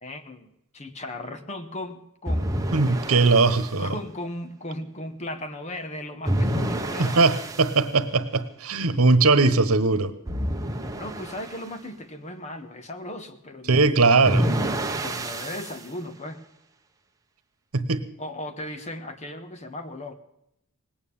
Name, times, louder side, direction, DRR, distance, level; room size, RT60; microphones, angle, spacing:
voice 1, 0.0-2.7 3.8-7.3 10.9-14.2 14.9-16.4 18.2-20.1, left 1 dB, 30° left, 8 dB, 1.3 m, -37 dB
sound 1, 2.3-3.7 6.2-7.8 10.3-11.6 14.2-15.8, right 1 dB, 15° right, 1.2 m, -28 dB
voice 2, 2.7-3.9 7.0-10.1 13.7-14.5 17.7-18.0, right 3 dB, 75° right, 12 dB, 1.2 m, -20 dB
19.0 x 9.1 x 7.2 m, 0.80 s
head